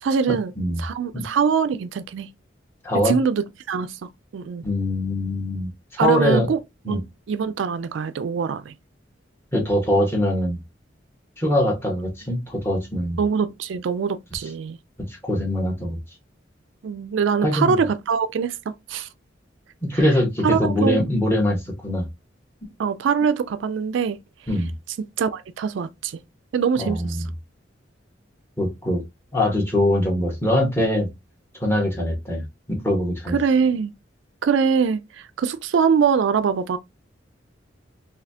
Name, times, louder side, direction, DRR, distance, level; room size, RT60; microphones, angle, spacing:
voice 1, 0.0-0.5 0.8-2.3 2.9-4.6 6.0-6.6 6.9-8.7 13.2-14.8 16.8-19.1 20.4-21.0 22.8-24.2 25.2-26.2 26.5-27.2 33.3-33.9 34.4-36.8, right 6 dB, 70° right, 0.3 m, -23 dB
voice 2, 2.8-3.2 4.6-6.5 6.9-7.0 9.5-10.6 11.4-13.2 15.2-16.0 17.4-17.7 19.8-21.6 21.8-22.0 24.5-24.7 26.8-27.2 28.6-29.0 29.3-31.1 31.6-33.4, left 1 dB, 15° left, 1.3 m, -22 dB
4.0 x 2.7 x 2.7 m
head